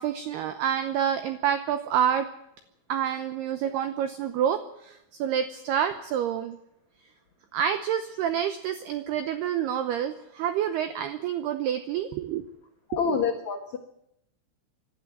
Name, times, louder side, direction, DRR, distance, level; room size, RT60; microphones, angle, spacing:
voice 1, 0.0-2.3 2.9-6.6 7.5-12.4 13.0-13.2, right 9 dB, 90° right, 9 dB, 2.3 m, -28 dB
voice 2, 12.9-13.8, left 7 dB, 85° left, 3 dB, 1.6 m, -27 dB
25.5 x 12.5 x 9.3 m, 0.82 s
omnidirectional pair, 5.9 m